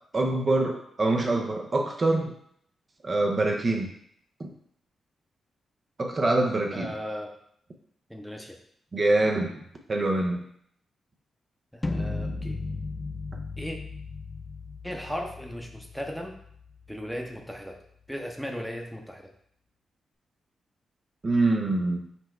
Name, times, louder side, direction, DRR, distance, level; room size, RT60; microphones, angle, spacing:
voice 1, 0.1-2.3 3.0-3.9 4.4-4.5 6.0-6.9 8.9-9.6 9.9-10.4 21.2-22.0, right 2 dB, 45° right, 2 dB, 0.6 m, -25 dB
voice 2, 6.7-7.3 8.1-8.6 11.7-12.6 13.6-13.8 14.8-16.4 16.9-17.8 18.1-19.3, equal, ahead, 2 dB, 0.8 m, -36 dB
sound 1, 11.8-17.8, left 3 dB, 30° left, 0.4 m, -36 dB
4.2 x 2.2 x 4.2 m, 0.67 s
supercardioid pair, 50°, 0 cm